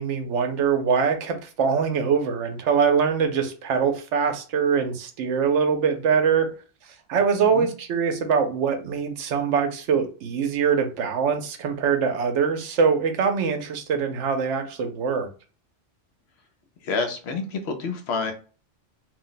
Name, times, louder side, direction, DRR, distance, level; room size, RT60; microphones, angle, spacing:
voice 1, 0.0-6.5 7.1-15.3, right 6 dB, 75° right, 6 dB, 0.9 m, -23 dB
voice 2, 16.8-18.3, left 4 dB, 65° left, 6 dB, 0.8 m, -28 dB
2.6 x 2.1 x 3.8 m, 0.36 s
omnidirectional pair, 1.3 m